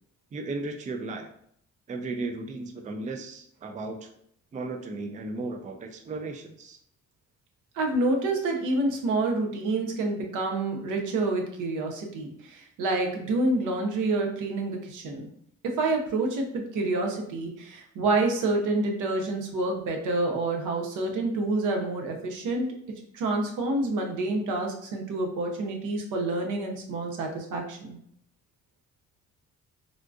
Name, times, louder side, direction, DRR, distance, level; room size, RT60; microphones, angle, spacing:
voice 1, 0.3-1.3 1.9-4.1 4.5-6.8, right 3 dB, 25° right, 6 dB, 0.4 m, -35 dB
voice 2, 7.7-15.3 15.6-22.7 23.1-28.0, right 2 dB, 80° right, 2 dB, 0.7 m, -28 dB
3.6 x 2.5 x 2.3 m, 0.69 s
cardioid pair, 90°, 30 cm